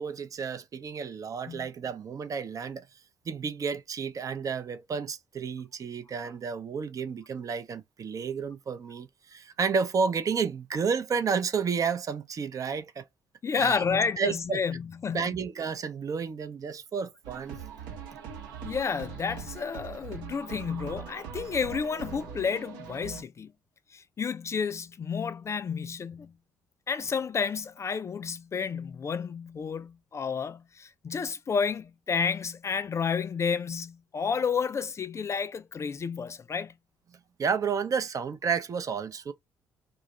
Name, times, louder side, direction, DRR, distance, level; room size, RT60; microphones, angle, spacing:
voice 1, 0.0-2.9 3.3-13.1 13.5-13.8 14.2-14.6 15.1-17.6 37.4-39.3, right 6 dB, 40° right, 0.5 m, -31 dB
voice 2, 13.4-15.3 18.6-23.5 23.9-26.3 26.9-36.7, left 6 dB, 35° left, 0.3 m, -31 dB
sound 1, 17.2-23.2, right 7 dB, 70° right, 0.8 m, -42 dB
2.3 x 2.0 x 3.0 m
hypercardioid pair, 50°, 9 cm